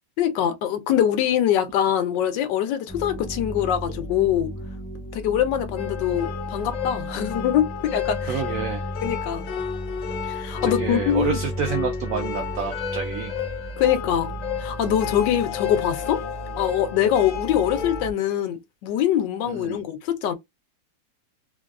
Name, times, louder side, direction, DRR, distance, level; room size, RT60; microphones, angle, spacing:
voice 1, 0.2-4.5 5.1-8.4 9.0-9.4 10.2-11.4 13.8-14.3 14.6-16.2 16.6-20.3, left 10 dB, 80° left, 1.3 m, -23 dB
sound 1, 2.9-18.1, right 1 dB, 30° left, 0.3 m, -35 dB
sound 2, 5.8-18.1, left 8 dB, 65° left, 0.8 m, -32 dB
voice 2, 8.2-8.9 10.6-13.3 19.5-19.8, right 7 dB, 75° right, 0.7 m, -29 dB
3.4 x 2.2 x 2.3 m
omnidirectional pair, 1.9 m